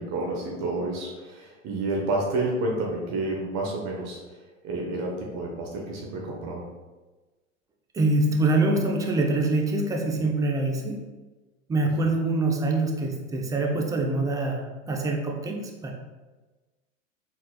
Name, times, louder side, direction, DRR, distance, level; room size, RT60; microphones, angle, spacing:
voice 1, 0.0-4.2 4.6-6.6, right 2 dB, 45° right, -1 dB, 1.0 m, -29 dB
voice 2, 7.9-11.0 11.7-15.9, right 2 dB, 10° right, 1 dB, 0.4 m, -25 dB
4.2 x 4.0 x 2.2 m, 1.2 s
hypercardioid pair, 95°, 38 cm